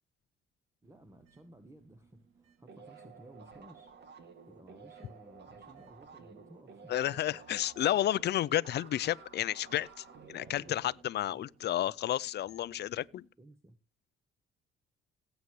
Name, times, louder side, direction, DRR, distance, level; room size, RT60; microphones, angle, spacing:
voice 1, 0.8-3.9 4.5-6.9 7.3-7.4 10.4-10.8 11.3-11.5 13.4-13.8, right 1 dB, 15° right, 1.3 m, -56 dB
sound 1, 0.8-13.3, right 6 dB, 80° right, 2.3 m, -66 dB
sound 2, 2.7-11.8, right 5 dB, 60° right, 2.3 m, -54 dB
voice 2, 6.9-13.3, left 12 dB, 60° left, 0.5 m, -31 dB
18.0 x 8.0 x 3.2 m
cardioid pair, 90°, 20 cm